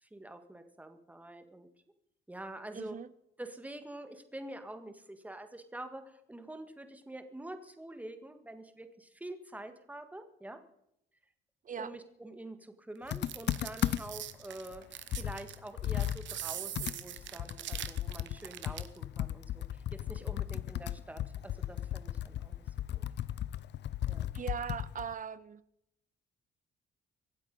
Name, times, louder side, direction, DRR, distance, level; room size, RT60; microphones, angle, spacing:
voice 1, 0.0-1.7 2.3-3.0 3.4-10.6 11.8-22.6 22.9-23.0 24.1-24.3, right 1 dB, 5° right, 1.6 m, -46 dB
voice 2, 2.7-3.1 11.6-11.9 24.3-25.6, right 7 dB, 40° right, 0.8 m, -39 dB
Computer keyboard, 13.1-14.3 14.7-14.8 15.1-18.4 18.7-25.1, left 12 dB, 60° left, 0.6 m, -36 dB
sound 1, 13.1-19.0, right 11 dB, 70° right, 0.9 m, -42 dB
24.0 x 8.1 x 5.3 m
cardioid pair, 90°, 20 cm